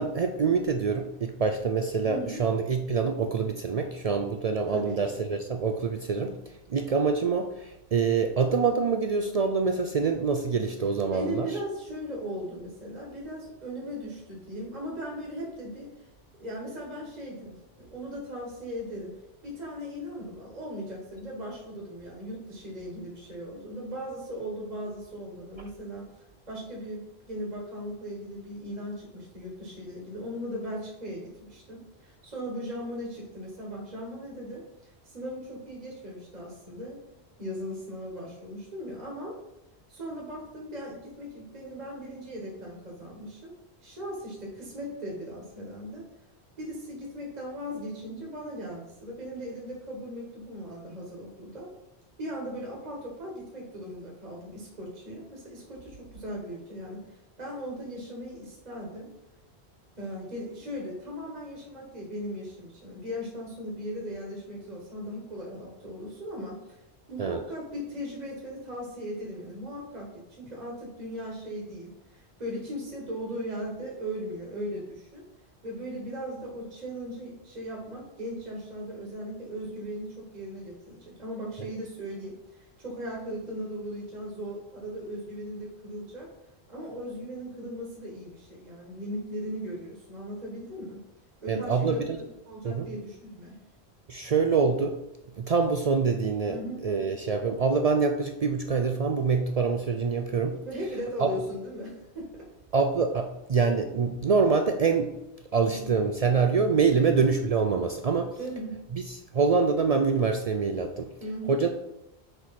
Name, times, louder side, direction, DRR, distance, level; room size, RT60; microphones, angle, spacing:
voice 1, 0.0-6.3 6.7-11.6 67.2-67.4 91.5-92.2 92.6-92.9 94.1-94.9 95.4-100.6 101.2-101.3 102.7-105.1 105.5-108.3 108.9-111.1 111.5-111.7, right 5 dB, 60° right, 6 dB, 0.4 m, -25 dB
voice 2, 2.0-2.4 4.7-5.0 11.1-15.9 16.4-17.5 17.9-19.1 19.4-26.0 26.5-37.0 37.4-39.4 39.9-43.5 43.8-46.0 46.6-51.7 52.2-59.1 60.0-66.8 67.1-75.2 75.6-86.3 86.7-91.0 91.4-91.9 92.1-93.6 96.5-96.8 100.6-102.5 105.6-105.9 106.9-107.1 108.4-108.7 111.2-111.6, equal, 40° right, -3 dB, 1.6 m, -38 dB
6.7 x 4.7 x 4.2 m, 0.92 s
omnidirectional pair, 1.1 m